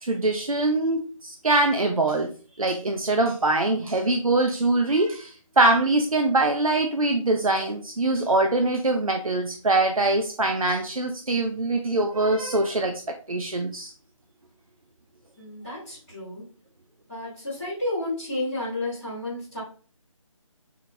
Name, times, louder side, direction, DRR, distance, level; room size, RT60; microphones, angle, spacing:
voice 1, 0.0-2.3 2.6-13.0 13.3-13.9, right 2 dB, 90° right, 5 dB, 0.5 m, -23 dB
voice 2, 15.4-16.4 17.1-19.6, left 1 dB, ahead, -24 dB, 0.5 m, -31 dB
3.5 x 2.9 x 2.3 m, 0.39 s
figure-of-eight pair, 155°, 17 cm